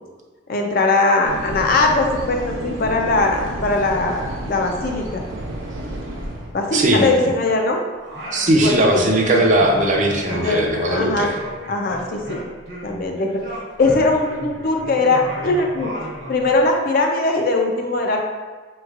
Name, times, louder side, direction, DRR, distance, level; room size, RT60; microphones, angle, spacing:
voice 1, 0.5-5.2 6.5-7.8 8.5-9.0 10.3-10.6 10.9-11.3 11.7-12.4 12.8-13.4 13.8-15.9 16.3-18.2, left 2 dB, 50° left, 2 dB, 0.5 m, -20 dB
sound 1, 1.2-6.5, right 1 dB, 85° right, 0.6 m, -31 dB
voice 2, 6.7-7.1 8.3-11.4, right 1 dB, 40° right, 1 dB, 0.5 m, -18 dB
Singing, 8.0-9.2 9.4-13.1 13.4-16.6, equal, 60° right, 0.9 m, -35 dB
5.1 x 3.1 x 2.4 m, 1.4 s
head